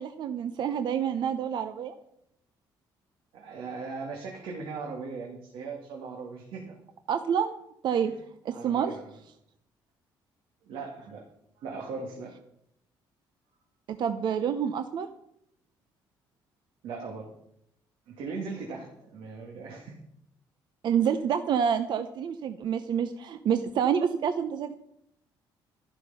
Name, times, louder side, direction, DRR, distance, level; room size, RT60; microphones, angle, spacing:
voice 1, 0.0-1.9 7.1-7.5 7.8-8.1 8.4-8.9 13.9-15.1 20.8-24.7, right 8 dB, 60° right, 9 dB, 0.8 m, -28 dB
voice 2, 3.3-6.8 8.0-8.1 8.5-9.1 10.7-11.2 11.6-12.3 16.8-17.3 18.1-20.0, right 4 dB, 80° right, 0 dB, 2.3 m, -38 dB
12.5 x 11.5 x 5.6 m, 0.76 s
cardioid pair, 105°, 9 cm